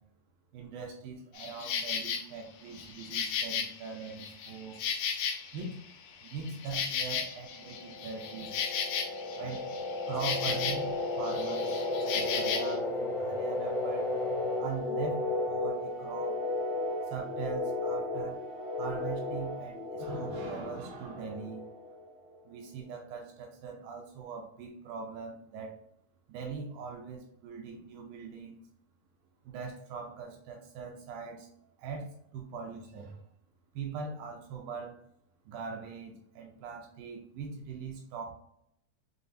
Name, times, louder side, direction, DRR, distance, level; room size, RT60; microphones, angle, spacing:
voice 1, 0.5-4.8 5.5-5.8 6.2-8.5 9.3-9.8 10.0-11.8 12.1-14.1 14.6-16.4 17.1-18.4 18.8-21.7 22.5-25.8 26.3-28.6 29.4-31.5 31.8-33.2 33.7-35.0 35.5-38.3, right 5 dB, 80° right, 1 dB, 2.2 m, -41 dB
Insect, 1.4-2.2 2.7-5.8 6.1-11.0 11.2-12.8, left 7 dB, 80° left, 2.2 m, -35 dB
sound 1, 7.6-22.2, left 2 dB, 60° left, 1.5 m, -34 dB
6.8 x 2.4 x 2.5 m, 0.74 s
omnidirectional pair, 4.3 m